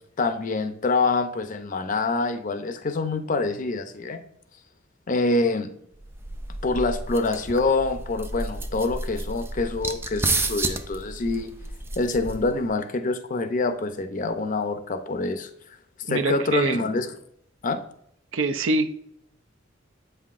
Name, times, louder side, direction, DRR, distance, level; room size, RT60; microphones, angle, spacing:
voice 1, 0.2-4.2 5.1-5.7 6.6-11.5 12.0-15.5 16.1-17.1 17.6-17.8, left 3 dB, 40° left, 9 dB, 0.5 m, -26 dB
sound 1, 6.0-12.7, right 2 dB, 10° right, 0.4 m, -31 dB
voice 2, 16.1-16.8 18.3-18.9, right 3 dB, 75° right, 10 dB, 0.6 m, -24 dB
7.9 x 5.6 x 2.5 m, 0.74 s
head